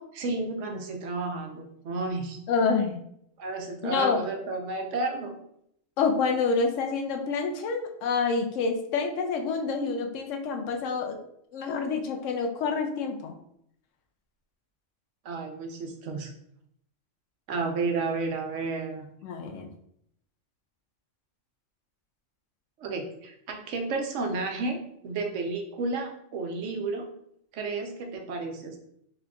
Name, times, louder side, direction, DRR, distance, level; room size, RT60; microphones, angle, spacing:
voice 1, 0.0-2.4 3.4-5.3 15.2-16.3 17.5-19.1 22.8-27.1 27.5-28.8, right 3 dB, 75° right, 3 dB, 1.0 m, -32 dB
voice 2, 2.5-3.0 3.8-4.2 6.0-11.2 11.5-13.3 19.2-19.7, left 4 dB, 85° left, 4 dB, 0.9 m, -27 dB
3.7 x 3.4 x 2.3 m, 0.72 s
omnidirectional pair, 1.3 m